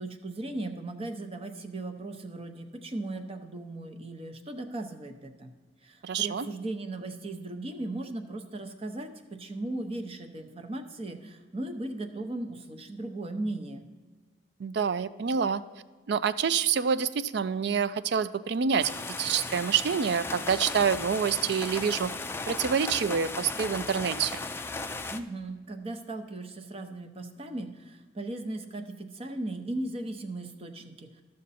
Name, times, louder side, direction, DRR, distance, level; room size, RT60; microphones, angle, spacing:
voice 1, 0.0-5.5 5.8-13.8 25.1-31.1, right 2 dB, 30° right, 7 dB, 0.8 m, -37 dB
voice 2, 6.0-6.5 14.6-15.6 16.1-18.9 19.2-22.1 22.5-24.3, right 6 dB, 60° right, 15 dB, 0.4 m, -27 dB
sound 1, 18.8-25.2, left 3 dB, 15° left, 0.4 m, -36 dB
13.0 x 6.5 x 4.1 m, 1.4 s
head